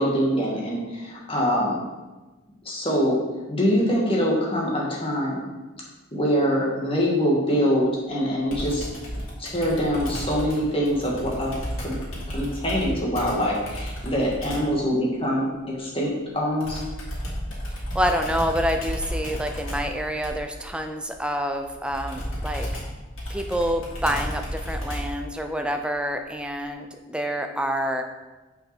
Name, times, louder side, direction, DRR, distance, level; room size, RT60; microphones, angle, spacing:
voice 1, 0.0-1.8 2.6-3.2 3.5-5.4 6.1-8.9 9.4-12.0 12.3-16.8, equal, 25° left, -4 dB, 2.0 m, -24 dB
Computer keyboard, 8.5-14.8 16.6-25.3, equal, 90° left, 2.6 m, -33 dB
voice 2, 17.9-22.7 23.3-28.0, equal, 5° right, 5 dB, 0.5 m, -27 dB
6.4 x 5.5 x 6.0 m, 1.2 s
head